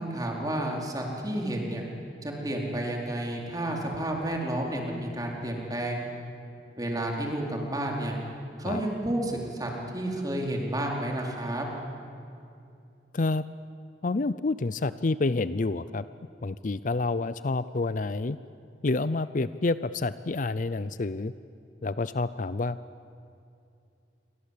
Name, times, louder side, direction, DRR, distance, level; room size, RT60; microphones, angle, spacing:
voice 1, 0.0-1.8 2.2-6.1 6.8-8.2 8.6-11.7, right 1 dB, 20° right, 0 dB, 4.3 m, -31 dB
voice 2, 13.1-13.4 14.0-16.0 16.4-18.4 18.8-21.3 21.8-22.8, left 3 dB, 45° left, 15 dB, 0.5 m, -28 dB
28.5 x 24.0 x 8.5 m, 2.6 s
head